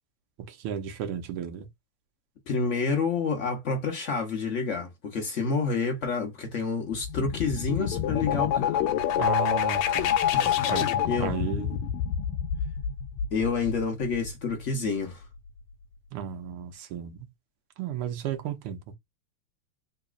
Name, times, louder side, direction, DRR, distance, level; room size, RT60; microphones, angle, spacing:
voice 1, 0.5-1.7 9.1-10.2 10.7-10.9 11.2-11.8 16.1-17.3 17.8-19.0, right 9 dB, 80° right, 1.6 m, -34 dB
voice 2, 2.5-9.0 10.3-11.3 13.3-15.2, left 4 dB, 65° left, 0.7 m, -29 dB
sound 1, 6.9-14.5, left 9 dB, 85° left, 1.5 m, -27 dB
4.0 x 2.8 x 2.3 m
omnidirectional pair, 2.4 m